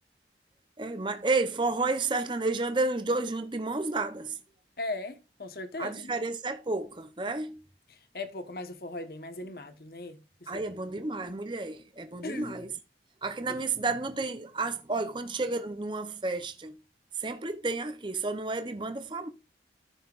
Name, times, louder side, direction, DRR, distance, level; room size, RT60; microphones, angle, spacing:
voice 1, 0.8-4.4 5.8-7.6 10.5-12.7 13.2-16.8 17.1-19.3, right 3 dB, 25° right, 0.6 m, -31 dB
voice 2, 4.8-6.1 7.9-10.6 12.2-12.6 13.5-13.6, left 2 dB, 55° left, 1.1 m, -38 dB
14.0 x 5.6 x 2.4 m
head